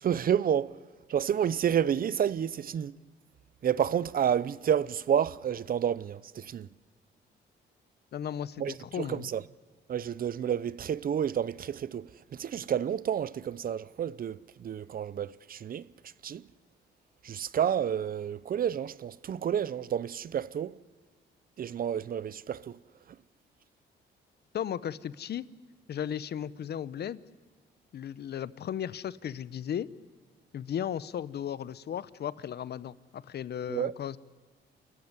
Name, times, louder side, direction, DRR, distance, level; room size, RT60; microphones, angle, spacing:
voice 1, 0.0-0.8 1.1-3.0 3.6-6.7 8.6-9.4 9.9-15.9 16.2-16.4 17.2-20.8 21.6-22.8 33.7-33.9, right 9 dB, 45° right, 0.6 m, -30 dB
voice 2, 8.1-9.3 24.5-25.5 25.9-27.2 27.9-29.9 30.5-34.2, left 9 dB, 55° left, 0.7 m, -35 dB
28.0 x 14.5 x 9.6 m
cardioid pair, 90°, 20 cm